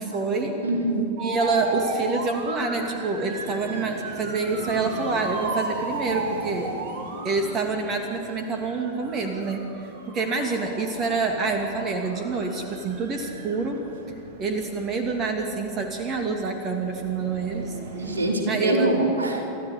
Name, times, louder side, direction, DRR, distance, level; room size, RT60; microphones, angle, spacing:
voice 1, 0.0-0.5 1.2-6.7 7.2-9.7 10.0-13.8 14.4-18.1 18.5-19.0, right 3 dB, 30° right, 4 dB, 2.4 m, -27 dB
voice 2, 0.6-1.0 18.0-19.4, right 1 dB, 75° right, 2 dB, 3.5 m, -24 dB
sound 1, 1.2-18.3, right 3 dB, 55° right, 2.4 m, -36 dB
30.0 x 13.5 x 8.4 m, 2.9 s
figure-of-eight pair, 90°, 0 cm